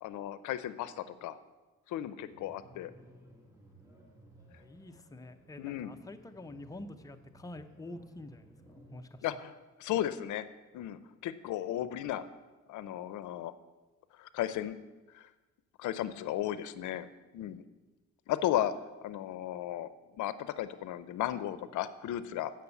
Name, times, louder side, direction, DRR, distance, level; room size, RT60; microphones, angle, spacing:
voice 1, 0.0-1.4 1.9-2.9 5.6-5.9 9.2-9.5 9.8-10.5 10.7-12.2 12.7-13.5 14.1-14.8 15.1-15.3 15.8-17.1 17.3-17.6 18.3-18.7 19.0-19.9 20.2-22.5, left 12 dB, 80° left, 14 dB, 0.6 m, -35 dB
sound 1, 2.3-9.1, right 1 dB, 10° right, 2.4 m, -58 dB
voice 2, 4.5-9.4, left 1 dB, 10° left, 7 dB, 0.7 m, -47 dB
8.4 x 6.1 x 8.2 m, 1.2 s
cardioid pair, 90°, 30 cm